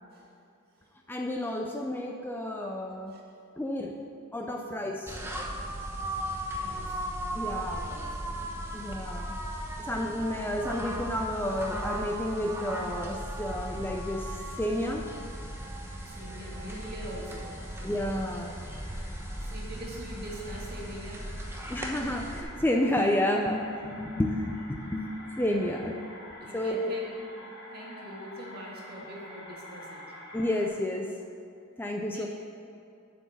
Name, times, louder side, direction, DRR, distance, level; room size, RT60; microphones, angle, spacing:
voice 1, 1.1-3.1 3.6-4.0 4.3-5.2 7.3-7.9 8.7-9.3 9.8-14.3 14.6-15.1 17.8-18.5 21.7-26.0 26.5-26.9 30.3-31.1 31.8-32.3, left 1 dB, 10° left, 1 dB, 0.4 m, -30 dB
voice 2, 3.1-3.5 5.7-7.1 7.7-8.3 8.9-9.4 16.0-17.8 18.8-18.9 19.3-21.4 26.4-30.0 32.1-32.3, right 1 dB, 45° right, -3 dB, 1.9 m, -44 dB
sound 1, 5.1-22.4, right 1 dB, 10° right, 0.8 m, -37 dB
sound 2, 12.5-30.7, left 1 dB, 55° left, 1.4 m, -49 dB
7.9 x 6.1 x 7.1 m, 2.5 s
head